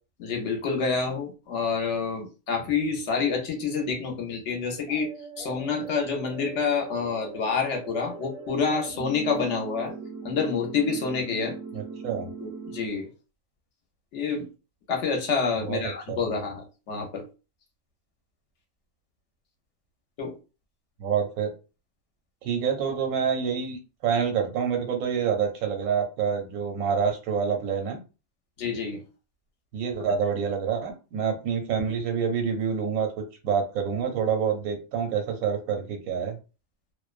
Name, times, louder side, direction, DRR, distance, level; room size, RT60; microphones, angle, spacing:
voice 1, 0.2-5.1 5.4-9.9 10.2-11.5 12.4-13.1 14.1-14.5 14.9-17.2 20.2-20.3 28.6-29.0, left 5 dB, 65° left, 2 dB, 0.9 m, -28 dB
sound 1, 4.9-12.9, right 4 dB, 40° right, 0.5 m, -40 dB
voice 2, 11.7-12.3 15.6-16.4 21.0-21.5 22.4-28.0 29.7-33.1 33.4-36.4, right 7 dB, 90° right, 4 dB, 1.1 m, -27 dB
2.5 x 2.1 x 2.4 m, 0.31 s
omnidirectional pair, 1.4 m